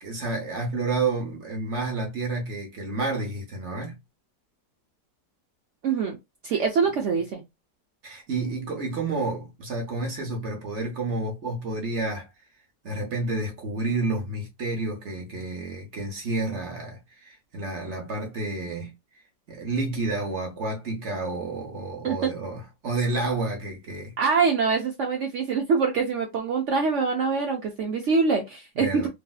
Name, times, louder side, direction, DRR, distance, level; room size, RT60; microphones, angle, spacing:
voice 1, 0.0-4.0 6.5-7.0 8.0-12.3 12.8-18.9 19.5-24.1 28.7-29.1, right 3 dB, 50° right, 1.0 m, -30 dB
voice 2, 5.8-6.2 6.4-7.4 22.0-22.3 24.2-29.1, right 5 dB, 70° right, 0.7 m, -24 dB
3.1 x 2.7 x 2.3 m
omnidirectional pair, 1.9 m